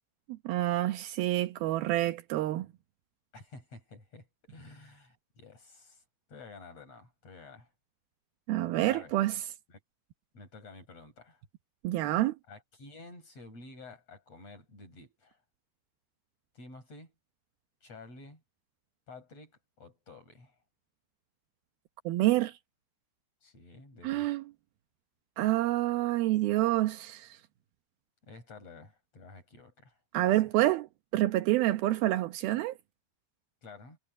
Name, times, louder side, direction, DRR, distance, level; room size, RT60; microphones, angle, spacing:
voice 1, 0.5-2.7 8.5-9.4 11.8-12.4 22.1-22.5 24.0-24.4 25.4-27.4 30.1-30.9 31.1-32.8, right 16 dB, 80° right, 2.2 m, -27 dB
voice 2, 3.3-6.0 6.3-7.7 8.8-9.2 9.7-9.8 10.3-11.4 12.5-15.4 16.5-17.1 17.8-18.4 19.1-20.6 23.4-24.3 28.2-30.4 33.6-34.0, left 3 dB, 30° left, 8.8 m, -51 dB
omnidirectional pair, 5.6 m